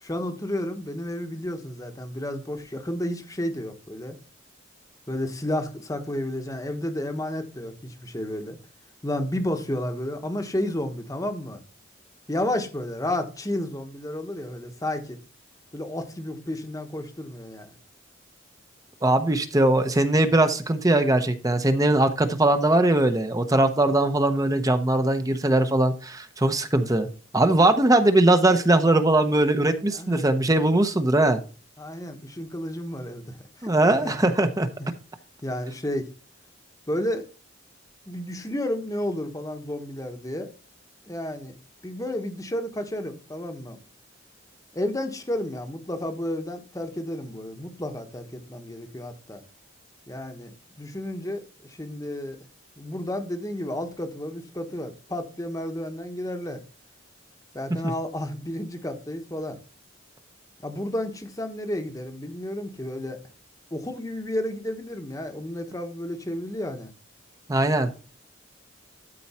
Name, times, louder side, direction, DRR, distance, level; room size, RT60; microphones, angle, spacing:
voice 1, 0.0-4.2 5.1-8.6 9.0-11.6 12.3-15.2 15.7-17.7 29.9-30.4 31.8-34.1 35.4-36.1 36.9-37.3 38.1-40.5 41.1-41.5 41.8-43.8 44.7-49.4 50.1-50.5 50.8-52.4 52.8-56.6 57.5-59.6 60.6-63.2 63.7-66.9, left 1 dB, 15° left, 1.1 m, -31 dB
voice 2, 19.0-27.1 27.3-31.4 33.6-34.7 67.5-67.9, right 2 dB, 15° right, 0.8 m, -20 dB
13.0 x 4.6 x 4.2 m
head